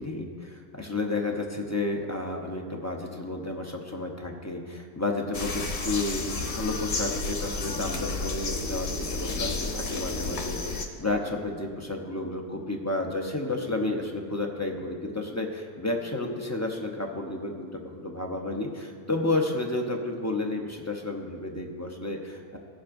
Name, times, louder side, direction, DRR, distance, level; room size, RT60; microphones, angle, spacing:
voice 1, 0.0-22.6, left 2 dB, 15° left, 1 dB, 0.7 m, -31 dB
sound 1, 5.3-10.8, left 3 dB, 60° left, 1.2 m, -31 dB
18.0 x 7.3 x 2.6 m, 2.2 s
omnidirectional pair, 1.3 m